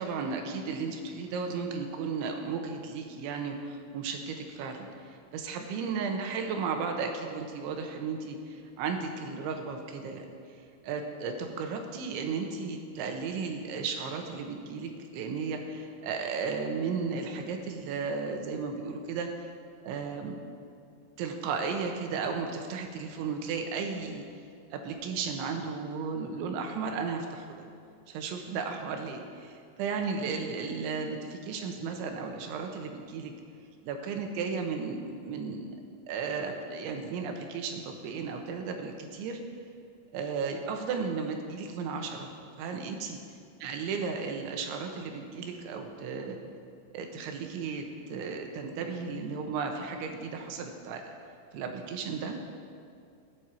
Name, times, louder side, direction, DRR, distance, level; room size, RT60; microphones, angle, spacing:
voice 1, 0.0-10.3 10.8-19.5 19.8-20.4 21.2-24.2 24.7-27.6 28.1-33.3 33.8-35.7 36.1-39.4 40.1-43.2 43.6-46.4 46.9-51.1 51.5-52.4, right 5 dB, 85° right, 4 dB, 3.5 m, -34 dB
21.0 x 9.2 x 4.5 m, 2.4 s
omnidirectional pair, 5.4 m